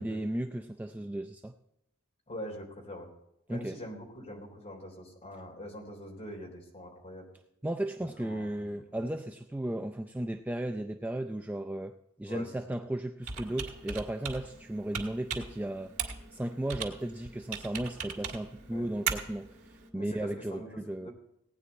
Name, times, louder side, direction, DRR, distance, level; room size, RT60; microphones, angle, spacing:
voice 1, 0.0-1.5 3.5-3.8 7.6-11.9 12.2-15.9 16.3-21.1, right 1 dB, 10° right, 5 dB, 0.4 m, -35 dB
voice 2, 2.3-3.1 3.5-7.3 8.0-9.1 12.3-12.8 18.7-18.9 19.9-21.1, equal, 30° left, 0 dB, 3.5 m, -44 dB
Computer keyboard, 13.2-19.9, right 6 dB, 75° right, 2.5 m, -39 dB
18.0 x 9.6 x 4.2 m, 0.81 s
head